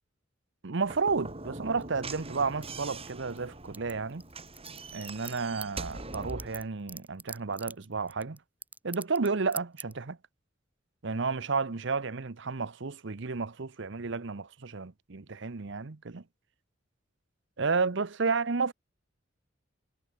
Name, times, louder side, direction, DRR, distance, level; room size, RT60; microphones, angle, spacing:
voice 1, 0.6-4.2 4.9-8.4 8.8-10.2 11.0-16.2 17.6-18.7, right 4 dB, 65° right, 0.9 m, -32 dB
Slam / Knock, 0.8-6.7, right 3 dB, 30° right, 4.9 m, -42 dB
sound 1, 1.8-3.4 3.6-9.3 9.5-9.9, right 3 dB, 10° right, 4.6 m, -44 dB
head